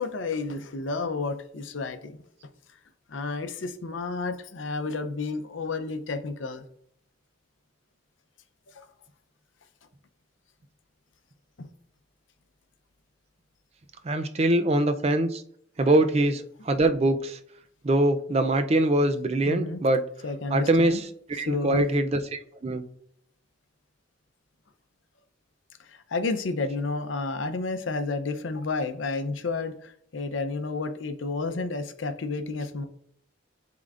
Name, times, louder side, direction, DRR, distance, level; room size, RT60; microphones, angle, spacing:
voice 1, 0.0-2.2 3.1-6.6 8.7-8.9 11.6-11.7 15.8-15.9 19.5-19.8 20.2-21.0 21.4-21.9 25.8-32.8, left 3 dB, 75° left, 0.6 m, -31 dB
voice 2, 14.0-15.4 15.8-17.4 17.8-20.0 20.5-21.0 21.3-22.8, right 1 dB, 30° right, 0.4 m, -23 dB
11.0 x 3.8 x 2.5 m
head